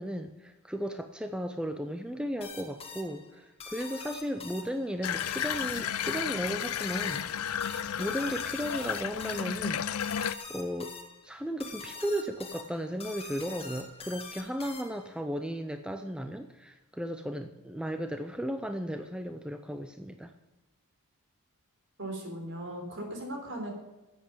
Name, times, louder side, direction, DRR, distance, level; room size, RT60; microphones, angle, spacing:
voice 1, 0.0-7.3 8.0-11.0 11.2-20.3, equal, 5° right, 7 dB, 0.6 m, -35 dB
sound 1, 2.4-15.2, left 4 dB, 25° left, 1.5 m, -45 dB
Water tap faucet / Bathtub (filling or washing), 5.0-10.3, left 9 dB, 70° left, 0.5 m, -33 dB
voice 2, 22.0-23.7, right 1 dB, 55° right, 3 dB, 3.6 m, -38 dB
11.0 x 8.1 x 8.5 m, 1.1 s
head